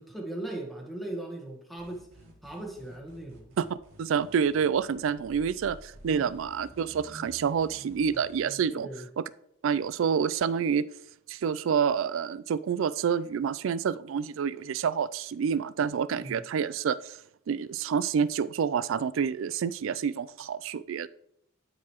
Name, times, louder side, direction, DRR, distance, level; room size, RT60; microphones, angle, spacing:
voice 1, 0.0-2.1 2.4-3.5 6.1-6.4 8.7-9.1 16.1-16.4, right 1 dB, ahead, 1 dB, 1.2 m, -39 dB
sound 1, 1.8-8.6, right 1 dB, 85° right, 2.0 m, -51 dB
voice 2, 3.6-8.9 9.2-9.3 9.6-10.8 11.3-17.2 17.5-21.1, right 7 dB, 65° right, 17 dB, 0.3 m, -28 dB
12.0 x 4.8 x 3.0 m, 0.73 s
head